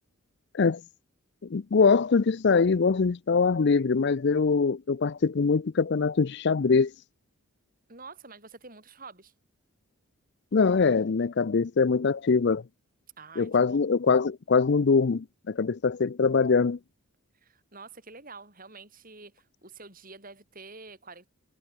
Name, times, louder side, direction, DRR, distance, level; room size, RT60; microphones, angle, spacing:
voice 1, 1.5-6.9 10.5-12.6 13.4-16.8, left 5 dB, 50° left, 0.5 m, -23 dB
voice 2, 7.9-9.3 13.2-13.9 17.4-21.3, right 4 dB, 40° right, 7.8 m, -47 dB
head